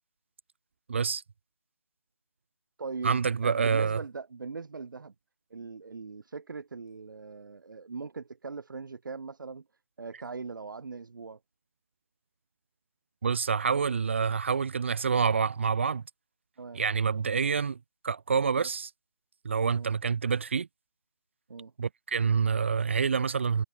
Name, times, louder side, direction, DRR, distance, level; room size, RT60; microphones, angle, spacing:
voice 1, 0.9-1.2 3.0-4.0 13.2-16.0 16.7-17.8 18.0-18.9 19.4-20.7 21.8-23.6, right 6 dB, 25° right, 0.9 m, -27 dB
voice 2, 2.8-5.1 5.5-9.6 10.0-11.4 16.6-16.8 18.6-18.7 19.7-20.0 21.5-21.7, right 4 dB, 45° right, 3.2 m, -40 dB
figure-of-eight pair, 165°, 15 cm